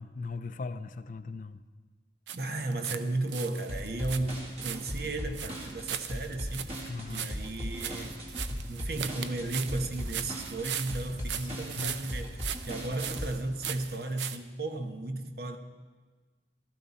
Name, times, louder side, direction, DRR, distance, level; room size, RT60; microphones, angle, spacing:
voice 1, 0.0-1.6 6.9-7.6 11.7-12.0, left 3 dB, 50° left, 0.5 m, -38 dB
voice 2, 2.3-6.7 7.1-8.2 8.7-15.6, right 2 dB, 60° right, 1.0 m, -35 dB
sound 1, 2.3-3.0 3.3-14.4, right 9 dB, 85° right, 0.6 m, -39 dB
sound 2, 3.7-13.3, equal, 35° right, 2.1 m, -38 dB
15.5 x 13.5 x 4.2 m
head